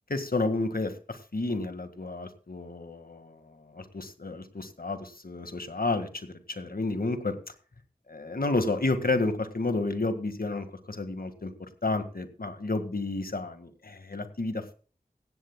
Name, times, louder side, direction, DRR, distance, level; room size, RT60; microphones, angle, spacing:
voice 1, 0.1-7.4 8.1-14.7, left 2 dB, 70° left, 8 dB, 1.8 m, -31 dB
16.5 x 16.0 x 2.3 m, 0.40 s
wide cardioid pair, 50°, 16 cm